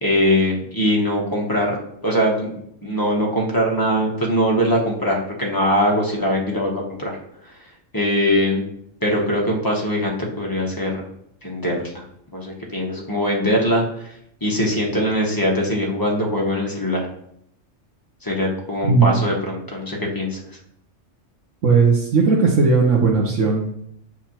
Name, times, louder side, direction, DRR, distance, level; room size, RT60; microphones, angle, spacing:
voice 1, 0.0-2.5 2.8-7.2 7.9-8.7 9.0-11.1 11.4-12.0 12.3-13.8 14.4-17.1 18.2-20.4, equal, 20° left, -2 dB, 1.0 m, -21 dB
voice 2, 18.8-19.2 21.6-23.8, right 4 dB, 85° right, -3 dB, 1.2 m, -17 dB
7.4 x 5.1 x 3.0 m, 0.73 s
omnidirectional pair, 1.3 m